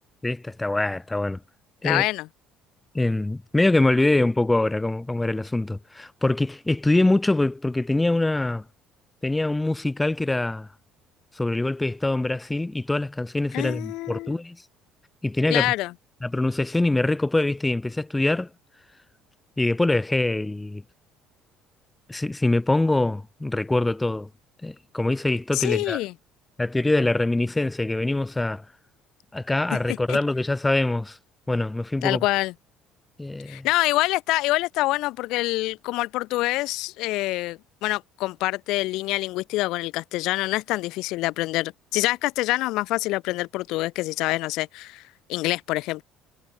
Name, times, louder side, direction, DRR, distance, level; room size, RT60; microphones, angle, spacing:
voice 1, 0.2-1.4 1.8-2.0 2.9-8.6 9.2-10.7 11.4-14.6 15.2-15.7 16.2-18.5 19.6-20.8 22.1-24.3 24.6-26.0 26.6-28.6 29.3-31.2 31.5-32.2 33.2-33.7, left 2 dB, 10° left, 5.7 m, -24 dB
voice 2, 1.8-2.3 13.5-14.3 15.5-15.9 25.5-26.1 30.1-30.2 32.0-32.5 33.5-45.0 45.3-46.0, left 19 dB, 70° left, 2.9 m, -26 dB
cardioid pair, 160°, 0 cm